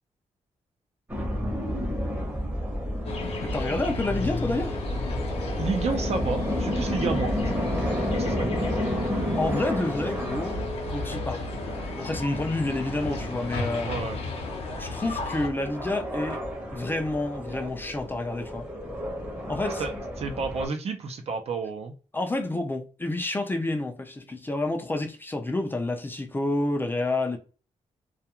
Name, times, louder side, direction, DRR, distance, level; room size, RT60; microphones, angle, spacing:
sound 1, 1.1-20.7, equal, 15° right, 0.8 m, -32 dB
sound 2, 3.0-15.5, left 2 dB, 50° left, 0.7 m, -34 dB
voice 1, 3.4-4.8 8.6-8.7 9.4-11.4 12.0-14.0 14.8-16.4 16.7-18.7 19.5-19.9 22.1-27.4, left 2 dB, 15° left, 0.4 m, -29 dB
voice 2, 5.6-7.3 8.1-8.6 13.9-14.2 19.8-19.9 20.2-21.9, right 4 dB, 55° right, 0.5 m, -30 dB
2.3 x 2.3 x 2.8 m
wide cardioid pair, 135°, 13 cm